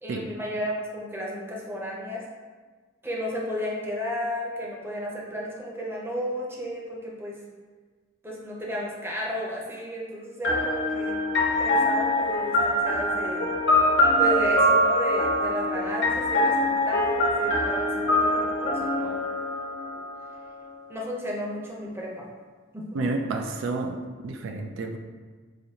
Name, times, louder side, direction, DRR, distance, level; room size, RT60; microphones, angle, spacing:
voice 1, 0.0-2.2 3.0-7.4 8.2-11.2 11.6-13.4 14.2-19.2 20.9-22.2 22.7-23.0, equal, 10° right, -3 dB, 0.6 m, -33 dB
sound 1, 10.4-20.2, left 1 dB, 65° left, 0.7 m, -23 dB
voice 2, 22.9-24.0 24.2-25.0, right 3 dB, 85° right, 4 dB, 0.4 m, -30 dB
5.0 x 2.6 x 2.8 m, 1.4 s
head